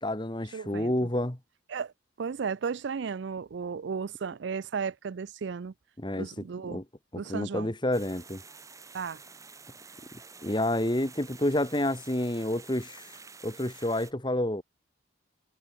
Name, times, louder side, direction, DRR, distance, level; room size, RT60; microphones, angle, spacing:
voice 1, 0.0-1.4 6.0-6.3 6.7-6.8 7.1-8.4 10.4-13.0 13.4-14.6, left 1 dB, 20° left, 1.7 m, -29 dB
voice 2, 0.5-0.9 1.7-1.9 2.2-5.7 6.2-6.8 7.1-7.7 8.9-9.2, right 5 dB, 60° right, 0.4 m, -34 dB
sound 1, 7.9-14.1, right 4 dB, 15° right, 3.1 m, -49 dB
head